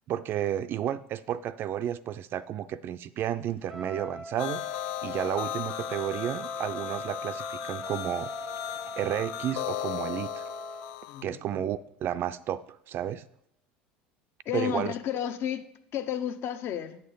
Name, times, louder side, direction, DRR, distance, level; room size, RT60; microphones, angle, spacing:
voice 1, 0.1-8.3 8.9-10.4 11.2-13.2 14.5-14.9, right 10 dB, 50° right, 14 dB, 0.4 m, -32 dB
Trumpet, 3.6-11.0, equal, ahead, 0.6 m, -41 dB
sound 1, 4.4-11.2, left 16 dB, 70° left, 0.4 m, -36 dB
voice 2, 11.1-11.6 14.5-15.6 15.9-17.0, left 9 dB, 55° left, 11 dB, 0.8 m, -32 dB
8.0 x 6.6 x 3.9 m, 0.77 s
hypercardioid pair, 85°, 5 cm